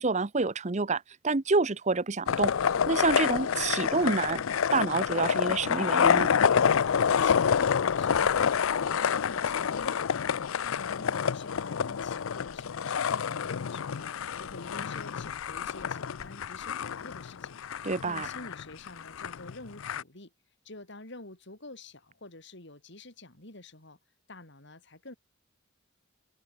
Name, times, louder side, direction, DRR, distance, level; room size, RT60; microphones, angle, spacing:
voice 1, 0.0-2.5 2.9-4.4 4.7-6.3 17.8-18.3, right 3 dB, 35° right, 0.8 m, -28 dB
sound 1, 2.3-20.0, left 7 dB, 85° left, 0.5 m, -28 dB
voice 2, 6.9-10.3 10.7-20.3 20.6-24.0 24.3-25.1, left 2 dB, 60° left, 4.5 m, -48 dB
head